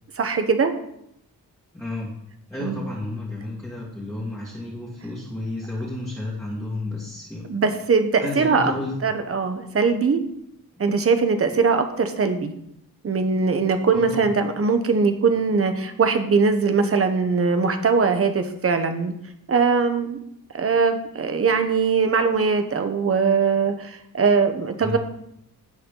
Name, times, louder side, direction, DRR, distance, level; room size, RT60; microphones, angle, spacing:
voice 1, 0.2-0.7 2.6-2.8 7.5-8.7 9.0-10.2 10.8-12.5 13.0-19.1 19.5-20.2 20.5-25.0, right 5 dB, 40° right, 7 dB, 1.0 m, -21 dB
voice 2, 1.7-2.1 2.5-7.5 8.2-9.0 13.9-14.2 24.8-25.0, left 2 dB, 10° left, -8 dB, 2.4 m, -31 dB
16.5 x 5.6 x 3.9 m, 0.76 s
wide cardioid pair, 175°, 36 cm